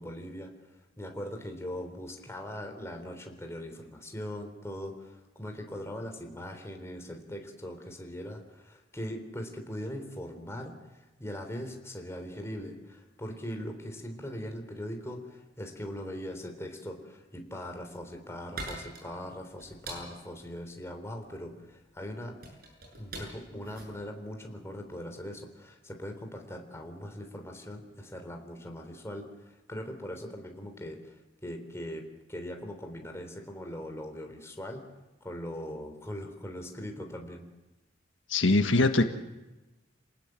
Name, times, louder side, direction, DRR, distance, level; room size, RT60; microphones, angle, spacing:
voice 1, 0.0-22.3 23.0-32.0 32.3-34.8 35.2-37.5, equal, 15° left, 4 dB, 3.6 m, -40 dB
sound 1, 17.9-25.1, right 2 dB, 50° right, 8.0 m, -45 dB
voice 2, 38.3-39.1, left 2 dB, 90° left, 7 dB, 1.6 m, -22 dB
27.5 x 19.5 x 7.6 m, 1.1 s
head